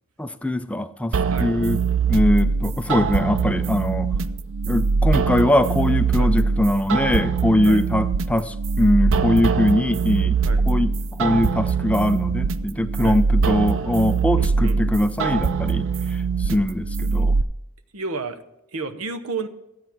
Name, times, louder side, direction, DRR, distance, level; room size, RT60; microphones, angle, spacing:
voice 1, 0.2-1.8 2.1-4.1 4.7-10.4 10.7-10.9 11.2-17.4, left 1 dB, 5° left, 10 dB, 0.4 m, -22 dB
sound 1, 1.1-17.4, right 4 dB, 65° right, 0.5 m, -22 dB
voice 2, 14.4-14.8 17.9-18.4 18.7-19.5, right 4 dB, 85° right, 10 dB, 0.9 m, -31 dB
13.0 x 8.5 x 4.5 m, 0.89 s
head